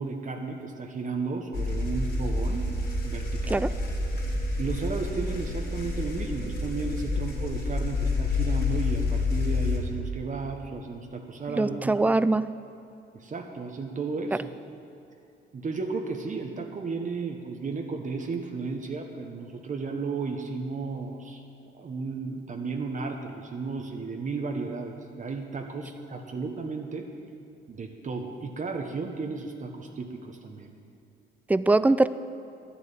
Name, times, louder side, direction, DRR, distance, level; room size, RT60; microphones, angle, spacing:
voice 1, 0.0-2.7 3.0-3.7 4.6-12.0 13.1-14.5 15.5-21.4 21.7-27.1 27.7-30.7, right 4 dB, 40° right, 3 dB, 1.1 m, -34 dB
sound 1, 1.5-9.8, left 3 dB, 50° left, 3.3 m, -28 dB
voice 2, 11.5-12.4 31.5-32.1, right 2 dB, 10° right, 14 dB, 0.3 m, -22 dB
11.0 x 7.0 x 9.0 m, 2.7 s
cardioid pair, 90°, 20 cm